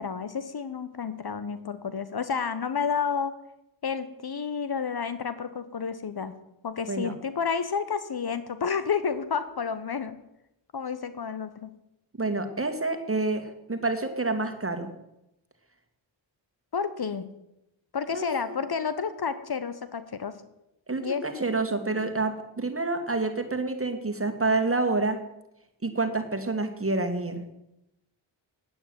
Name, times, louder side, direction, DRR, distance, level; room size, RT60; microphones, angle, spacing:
voice 1, 0.0-3.3 3.8-6.3 6.6-10.2 10.7-11.7 16.7-17.3 17.9-20.4 21.0-21.2, left 6 dB, 50° left, 13 dB, 1.1 m, -30 dB
voice 2, 12.2-14.9 18.1-18.6 20.9-25.2 25.8-27.4, right 3 dB, 30° right, 7 dB, 2.4 m, -28 dB
9.4 x 8.8 x 9.4 m, 0.88 s
cardioid pair, 40°, 47 cm